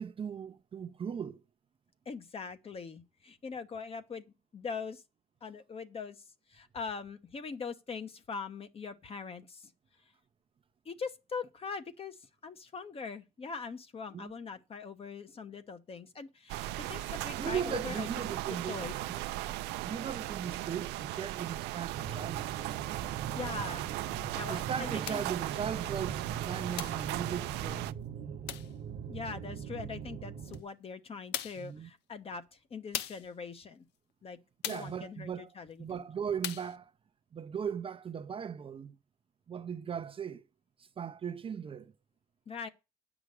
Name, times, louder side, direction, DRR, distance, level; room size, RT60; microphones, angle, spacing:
voice 1, 0.0-1.4 14.1-14.3 17.3-18.8 19.8-22.5 24.5-27.9 31.6-31.9 34.7-35.5 35.8-36.9 37.3-39.0 39.5-40.4 41.0-41.9, right 7 dB, 30° right, 0.6 m, -38 dB
voice 2, 2.1-4.3 4.5-5.0 5.4-6.2 6.5-9.7 10.8-18.1 18.5-18.9 23.3-23.9 24.3-25.2 29.1-33.8 34.2-34.4 34.6-36.0 42.5-42.7, left 5 dB, 35° left, 1.0 m, -42 dB
sound 1, 16.5-27.9, right 16 dB, 90° right, 0.5 m, -37 dB
sound 2, 21.9-30.6, right 7 dB, 60° right, 1.1 m, -41 dB
sound 3, 25.0-25.3 26.8-27.1 28.5-28.8 30.5-30.6 31.3-31.7 32.9-33.3 34.6-35.0 36.4-36.8, left 12 dB, 85° left, 0.6 m, -38 dB
9.4 x 6.1 x 6.6 m
cardioid pair, 110°, 17 cm